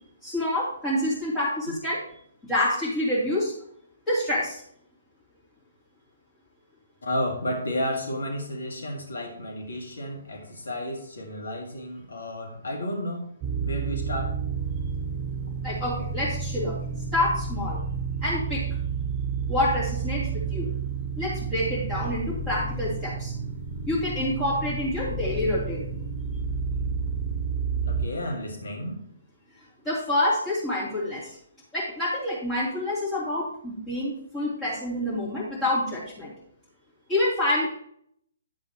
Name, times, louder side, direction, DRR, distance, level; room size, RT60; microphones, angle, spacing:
voice 1, 0.2-2.0 2.5-3.5 4.1-4.6 15.6-16.8 17.1-17.8 18.2-18.6 19.5-20.7 21.2-23.3 23.9-25.9 29.8-31.4 31.7-36.3 37.1-37.7, left 1 dB, 15° left, -8 dB, 3.2 m, -27 dB
voice 2, 7.0-13.3 13.6-14.3 27.9-29.0, left 1 dB, 65° left, 1 dB, 2.2 m, -32 dB
sound 1, 13.4-28.1, right 5 dB, 35° right, 0.6 m, -30 dB
9.5 x 8.0 x 3.0 m, 0.65 s
figure-of-eight pair, 130°, 0 cm